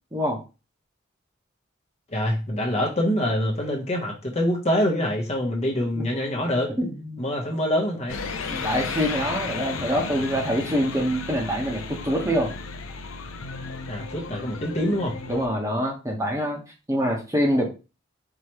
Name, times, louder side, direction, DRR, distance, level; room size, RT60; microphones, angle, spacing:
voice 1, 2.1-6.7 7.2-8.2 13.9-15.2, equal, 35° left, 0 dB, 1.0 m, -25 dB
voice 2, 6.8-7.2 8.5-12.5 15.3-16.6 16.9-17.7, equal, 15° right, 0 dB, 1.0 m, -25 dB
sound 1, 8.1-15.5, left 4 dB, 90° left, 0.6 m, -34 dB
4.8 x 3.0 x 3.0 m, 0.30 s
head